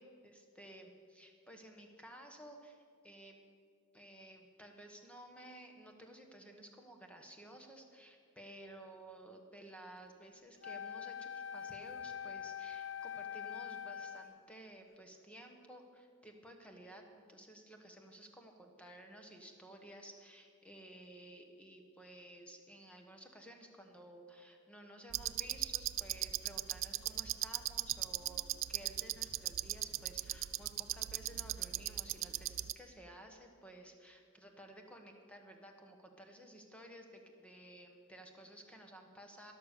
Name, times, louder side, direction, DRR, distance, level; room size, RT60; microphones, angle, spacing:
voice 1, 0.0-3.3 3.9-39.5, right 1 dB, 5° left, 3 dB, 1.2 m, -55 dB
Wind instrument woodwind instrument, 10.6-14.4, left 8 dB, 60° left, 0.4 m, -44 dB
sound 1, 25.1-32.7, right 15 dB, 60° right, 0.4 m, -39 dB
12.5 x 11.5 x 6.7 m, 2.2 s
head